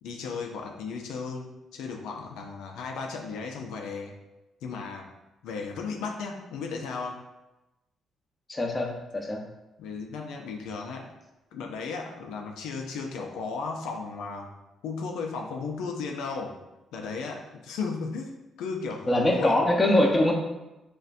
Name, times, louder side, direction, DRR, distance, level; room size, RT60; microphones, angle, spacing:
voice 1, 0.0-4.1 4.6-5.1 5.4-7.2 9.8-11.1 11.5-14.5 14.8-16.6 16.9-19.6, left 4 dB, 90° left, 1 dB, 0.5 m, -35 dB
voice 2, 8.5-9.4 19.1-20.3, left 1 dB, 20° left, 1 dB, 0.8 m, -23 dB
6.4 x 2.2 x 2.6 m, 0.98 s
cardioid pair, 90°, 0 cm